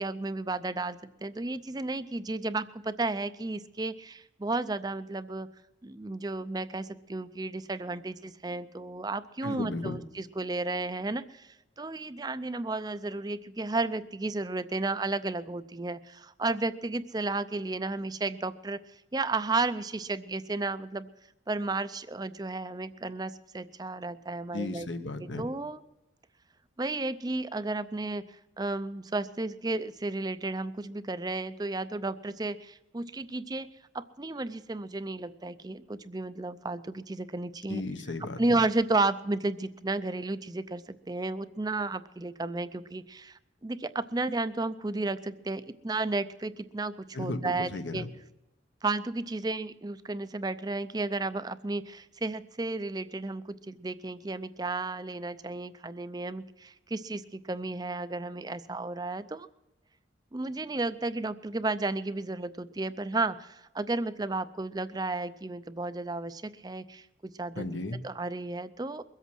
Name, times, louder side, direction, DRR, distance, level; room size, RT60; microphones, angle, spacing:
voice 1, 0.0-5.5 5.8-21.1 21.5-24.9 25.2-25.8 26.8-33.7 33.9-37.8 38.4-48.1 48.8-59.5 60.3-67.7 68.0-69.0, right 2 dB, 20° right, 13 dB, 0.5 m, -33 dB
voice 2, 9.4-10.0 24.5-25.5 37.7-38.6 47.1-48.1 67.6-68.0, left 2 dB, 80° left, 9 dB, 1.2 m, -35 dB
22.0 x 8.2 x 6.1 m, 0.97 s
head